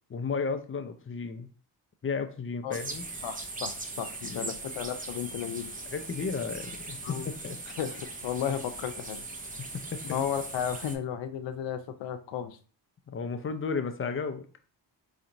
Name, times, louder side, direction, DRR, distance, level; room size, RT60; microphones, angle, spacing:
voice 1, 0.1-1.5 2.0-3.1 4.2-4.5 5.9-7.6 9.9-10.0 13.1-14.4, left 5 dB, 30° left, 8 dB, 0.5 m, -33 dB
sound 1, 2.7-11.0, right 2 dB, 20° right, 0.5 m, -40 dB
voice 2, 3.2-5.7 7.0-7.3 7.8-9.2 10.0-12.6, left 9 dB, 85° left, 8 dB, 0.5 m, -34 dB
4.2 x 2.9 x 2.6 m, 0.39 s
cardioid pair, 90°, 44 cm